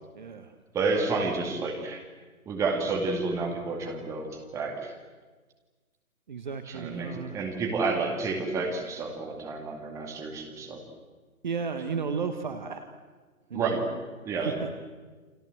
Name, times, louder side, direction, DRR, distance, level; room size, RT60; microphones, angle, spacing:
voice 1, 0.1-0.5 6.3-7.4 11.4-12.8 13.5-13.8 14.3-14.7, right 5 dB, 30° right, 8 dB, 1.6 m, -34 dB
voice 2, 0.7-2.0 2.5-4.3 4.5-4.9 6.7-10.8 13.5-13.8 14.3-14.5, right 3 dB, 5° right, 2 dB, 2.2 m, -30 dB
29.0 x 25.0 x 7.9 m, 1.4 s
figure-of-eight pair, 145°, 44 cm